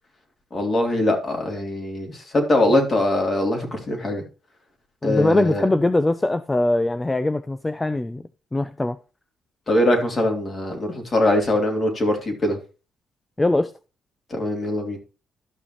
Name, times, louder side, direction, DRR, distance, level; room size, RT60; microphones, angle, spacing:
voice 1, 0.5-4.2 5.0-5.6 9.7-12.6 14.3-15.0, left 1 dB, 40° left, 3.1 m, -22 dB
voice 2, 5.0-8.2 8.5-9.0 13.4-13.7, left 2 dB, 15° left, 0.5 m, -21 dB
13.0 x 6.1 x 3.0 m
cardioid pair, 90°, 0 cm